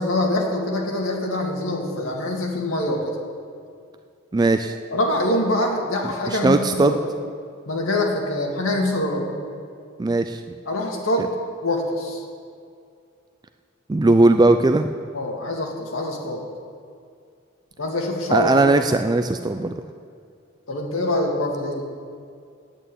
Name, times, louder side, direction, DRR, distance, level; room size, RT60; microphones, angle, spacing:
voice 1, 0.0-3.2 4.9-7.0 7.7-9.3 10.7-11.3 11.6-12.2 15.1-16.4 17.8-18.7 20.7-21.8, left 1 dB, 85° left, 0 dB, 2.1 m, -24 dB
voice 2, 4.3-4.7 6.0-6.9 10.0-10.4 13.9-14.9 18.3-19.7, right 2 dB, 20° right, 8 dB, 0.3 m, -18 dB
9.0 x 9.0 x 8.5 m, 2.3 s
head